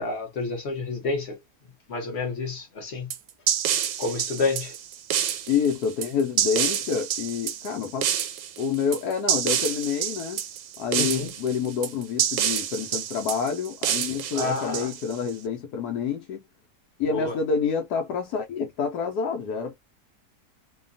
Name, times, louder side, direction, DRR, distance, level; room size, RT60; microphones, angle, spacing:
voice 1, 0.0-1.3 1.9-3.1 4.0-4.7 11.0-11.3 14.3-14.9 17.1-17.3, left 3 dB, 50° left, 1.1 m, -29 dB
sound 1, 3.1-15.3, right 10 dB, 85° right, 1.1 m, -28 dB
voice 2, 5.5-8.1 8.6-10.4 10.8-16.4 17.0-19.7, left 6 dB, 80° left, 1.1 m, -28 dB
2.8 x 2.2 x 2.5 m
omnidirectional pair, 1.7 m